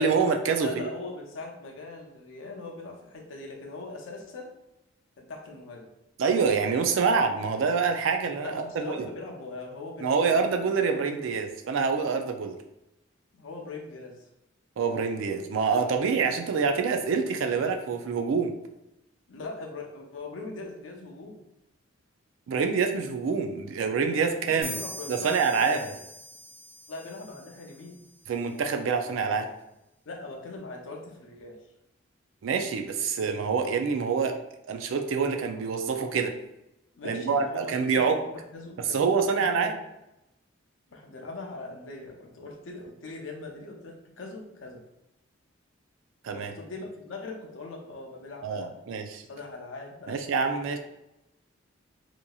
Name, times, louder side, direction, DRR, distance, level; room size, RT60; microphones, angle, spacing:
voice 1, 0.0-0.7 6.2-9.1 10.0-12.6 14.8-18.5 22.5-24.8 25.1-25.9 28.3-29.5 32.4-34.4 34.7-36.3 37.0-38.2 38.9-39.8 46.2-46.5 48.4-49.2 50.1-50.8, right 5 dB, 75° right, 5 dB, 0.4 m, -26 dB
voice 2, 0.6-4.5 5.2-5.9 8.4-10.4 13.3-14.3 19.3-21.4 24.2-26.0 26.9-28.0 30.1-31.6 36.9-39.7 40.9-44.8 46.3-48.7 49.3-50.4, left 3 dB, 75° left, 1 dB, 0.6 m, -41 dB
sound 1, 24.6-28.2, equal, 50° right, 1.0 m, -43 dB
2.9 x 2.5 x 2.3 m, 0.90 s
head